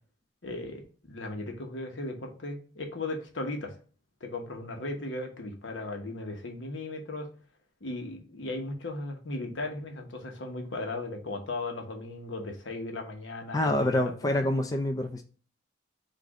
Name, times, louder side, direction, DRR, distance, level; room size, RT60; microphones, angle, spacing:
voice 1, 0.4-3.7 4.2-7.3 7.8-14.6, left 2 dB, 85° left, 3 dB, 1.0 m, -37 dB
voice 2, 13.5-15.2, left 1 dB, 20° left, 5 dB, 0.4 m, -26 dB
5.0 x 2.5 x 3.6 m, 0.40 s
head